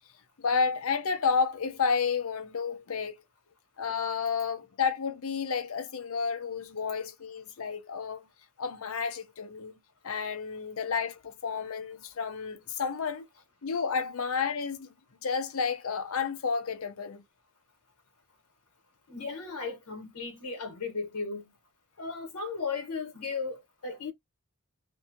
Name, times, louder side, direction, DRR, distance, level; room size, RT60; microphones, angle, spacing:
voice 1, 0.4-3.1 3.8-8.2 8.6-9.7 10.0-13.3 13.6-14.9 15.2-17.2, left 5 dB, 65° left, 0.6 m, -31 dB
voice 2, 19.1-21.5 22.0-24.1, left 4 dB, 90° left, 0.8 m, -36 dB
2.6 x 2.6 x 2.5 m
head